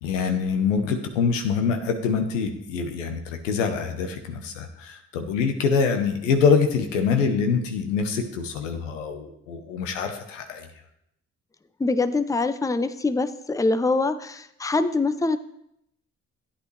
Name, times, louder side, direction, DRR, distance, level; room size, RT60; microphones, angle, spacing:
voice 1, 0.0-10.7, left 5 dB, 90° left, 6 dB, 0.9 m, -25 dB
voice 2, 11.8-15.4, left 3 dB, 10° left, 12 dB, 0.6 m, -24 dB
12.0 x 8.6 x 3.2 m, 0.77 s
hypercardioid pair, 45°, 37 cm